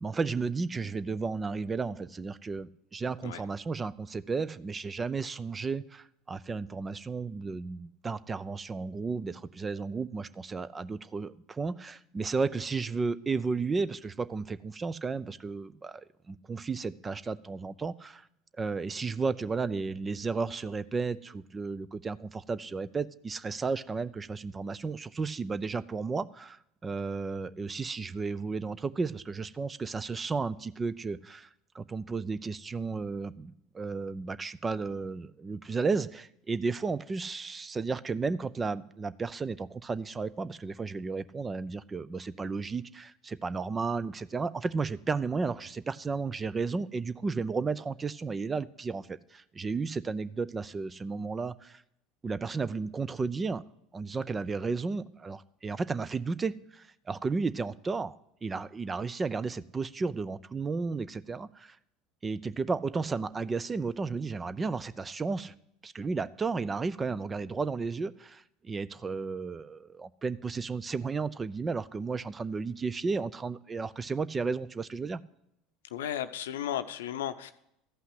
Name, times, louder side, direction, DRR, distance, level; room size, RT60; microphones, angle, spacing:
voice 1, 0.0-18.3 18.6-31.5 31.7-51.8 52.2-53.6 53.9-58.2 58.4-61.8 62.2-65.5 65.8-75.2, right 4 dB, 25° right, 16 dB, 0.5 m, -33 dB
voice 2, 75.9-77.5, left 10 dB, 80° left, 11 dB, 0.7 m, -34 dB
14.0 x 5.7 x 7.7 m, 0.76 s
hypercardioid pair, 75°, 0 cm